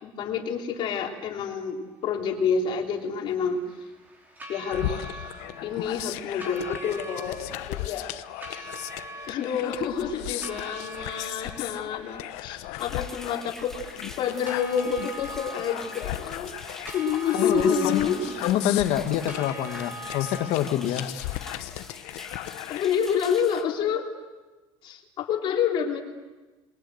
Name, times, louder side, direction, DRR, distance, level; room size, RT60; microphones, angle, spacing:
voice 1, 0.0-3.6 4.5-5.3 5.6-7.4 7.7-8.1 8.5-8.7 9.3-13.7 14.2-16.5 16.9-18.4 22.7-24.1 24.8-26.0, left 7 dB, 45° left, 1 dB, 3.5 m, -28 dB
sound 1, 2.5-20.5, right 1 dB, 15° right, 5.1 m, -43 dB
sound 2, 4.7-22.9, left 16 dB, 90° left, 1.0 m, -37 dB
sound 3, 12.8-23.6, left 2 dB, 5° left, 2.1 m, -44 dB
voice 2, 17.3-18.1 18.4-21.1, left 11 dB, 65° left, 8 dB, 1.8 m, -26 dB
27.5 x 22.5 x 8.0 m, 1.2 s
cardioid pair, 170°, 11 cm